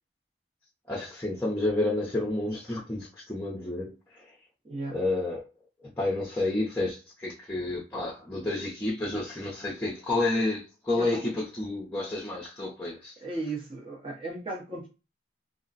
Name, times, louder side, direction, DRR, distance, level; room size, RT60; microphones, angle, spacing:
voice 1, 0.9-4.3 4.9-5.4 5.8-13.2, left 2 dB, 10° left, 0.6 m, -30 dB
voice 2, 4.6-5.0 10.9-11.1 13.2-14.9, right 2 dB, 30° right, 0.7 m, -35 dB
2.4 x 2.1 x 3.9 m
head